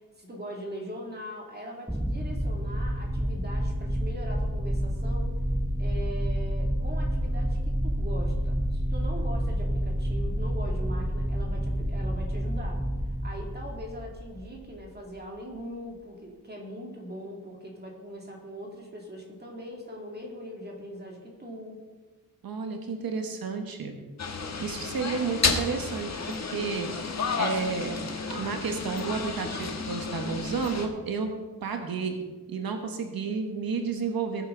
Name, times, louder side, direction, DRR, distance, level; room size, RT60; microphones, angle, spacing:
voice 1, 0.0-5.3 5.8-12.8 13.2-21.8, equal, 30° right, -1 dB, 2.4 m, -41 dB
sound 1, 1.9-14.9, equal, 5° right, 0.5 m, -29 dB
voice 2, 22.4-24.0 24.6-31.3 31.6-34.5, right 5 dB, 85° right, 5 dB, 1.3 m, -32 dB
sound 2, 24.2-30.9, left 4 dB, 50° left, 1.4 m, -31 dB
19.0 x 8.1 x 3.8 m, 1.3 s
wide cardioid pair, 140°, 35 cm